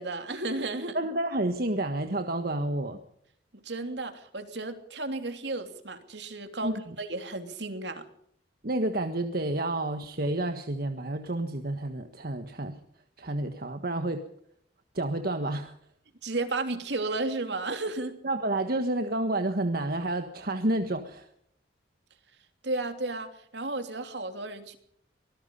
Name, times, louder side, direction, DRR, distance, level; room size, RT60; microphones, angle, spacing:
voice 1, 0.0-1.0 3.6-8.0 16.2-18.2 22.6-24.8, right 2 dB, 75° right, 7 dB, 3.1 m, -33 dB
voice 2, 0.9-3.0 6.6-6.8 8.6-12.8 13.2-14.3 14.9-15.7 18.2-21.3, right 1 dB, 55° right, 6 dB, 1.6 m, -30 dB
24.5 x 19.5 x 5.5 m, 0.68 s
head